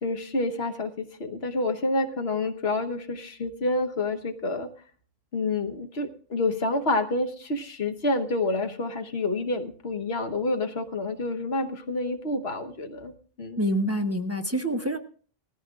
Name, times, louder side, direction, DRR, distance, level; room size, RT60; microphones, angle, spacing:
voice 1, 0.0-4.7 5.3-13.1 13.4-13.6, left 2 dB, 70° left, 7 dB, 1.4 m, -28 dB
voice 2, 13.6-15.0, equal, 15° right, 4 dB, 1.0 m, -26 dB
19.5 x 14.5 x 2.4 m, 0.42 s
omnidirectional pair, 1.1 m